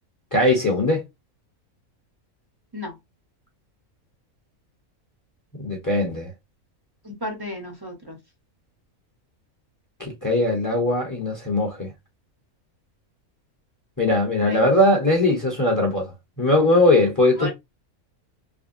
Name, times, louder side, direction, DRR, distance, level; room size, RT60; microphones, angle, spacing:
voice 1, 0.3-1.0 5.5-6.3 10.0-11.9 14.0-17.5, left 1 dB, 15° left, 0.8 m, -20 dB
voice 2, 7.1-8.2 14.4-14.6 17.4-17.5, left 1 dB, 20° right, 0.6 m, -32 dB
3.5 x 2.1 x 2.6 m
omnidirectional pair, 1.5 m